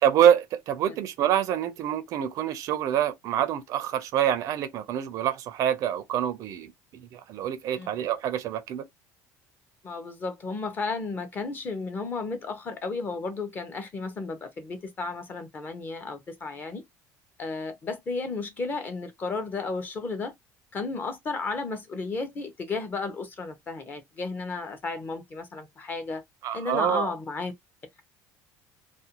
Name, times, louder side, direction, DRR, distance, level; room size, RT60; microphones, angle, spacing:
voice 1, 0.0-8.8 26.4-27.1, right 10 dB, 50° right, 0.4 m, -26 dB
voice 2, 9.8-16.8 17.4-20.3 20.7-26.2 26.5-27.5, left 3 dB, 25° left, 0.6 m, -33 dB
2.5 x 2.1 x 2.8 m
cardioid pair, 155°, 7 cm